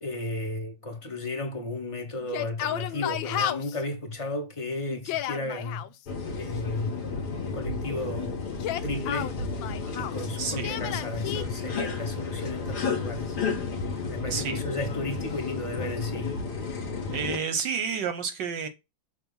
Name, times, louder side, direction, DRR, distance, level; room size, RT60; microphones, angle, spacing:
voice 1, 0.0-5.9 6.4-7.0 7.2-9.4 10.0-13.6 14.1-16.4, left 2 dB, 20° left, 0.9 m, -34 dB
Yell, 2.2-3.8 4.9-5.9 8.5-10.2 10.6-11.4, left 11 dB, 75° left, 1.3 m, -32 dB
sound 1, 6.1-17.4, left 4 dB, 55° left, 1.8 m, -32 dB
voice 2, 10.4-10.8 14.3-14.6 17.1-18.7, right 6 dB, 65° right, 1.2 m, -30 dB
6.4 x 3.0 x 5.3 m
omnidirectional pair, 2.3 m